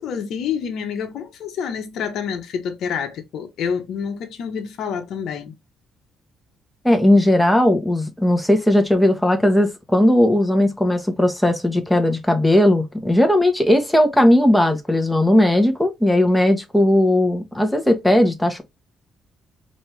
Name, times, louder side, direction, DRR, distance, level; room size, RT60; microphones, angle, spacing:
voice 1, 0.0-5.5, left 7 dB, 75° left, 0.9 m, -28 dB
voice 2, 6.8-18.6, left 1 dB, 5° left, 1.1 m, -17 dB
4.2 x 2.8 x 3.3 m
cardioid pair, 90°, 0 cm